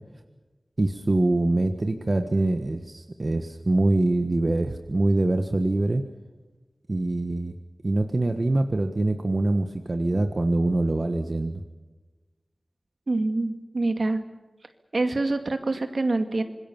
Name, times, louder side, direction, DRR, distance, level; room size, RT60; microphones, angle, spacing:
voice 1, 0.8-6.0 6.9-7.5 7.8-11.6, right 2 dB, 50° right, 6 dB, 1.5 m, -24 dB
voice 2, 13.1-14.2 14.9-16.4, right 2 dB, 65° right, 7 dB, 2.2 m, -25 dB
26.0 x 20.5 x 7.2 m, 1.2 s
wide cardioid pair, 45°, 0 cm